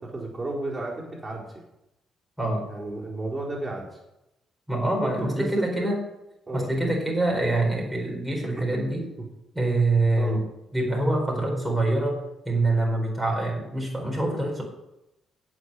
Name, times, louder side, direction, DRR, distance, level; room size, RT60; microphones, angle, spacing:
voice 1, 0.0-1.6 2.7-4.0 5.0-5.1 5.4-5.9 6.5-6.7 8.5-8.6 10.2-10.4, right 2 dB, 20° right, -4 dB, 4.4 m, -33 dB
voice 2, 2.4-2.7 4.7-6.0 6.5-9.1 9.5-10.4 10.7-14.6, right 2 dB, ahead, 0 dB, 4.3 m, -25 dB
16.5 x 6.4 x 6.6 m, 0.88 s
cardioid pair, 90°, 0 cm